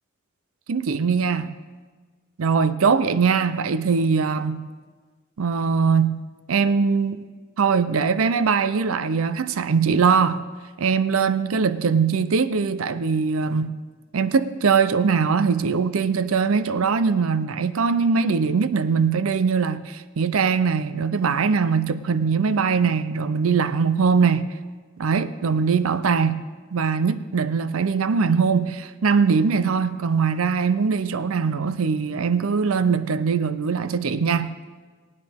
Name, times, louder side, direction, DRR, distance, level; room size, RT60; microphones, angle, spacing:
voice 1, 0.7-1.6 2.4-4.7 5.4-7.3 7.6-10.4 10.8-13.8 14.1-24.5 25.0-26.4 26.7-34.5, right 5 dB, 75° right, 13 dB, 0.5 m, -21 dB
19.0 x 9.6 x 3.5 m, 1.4 s
head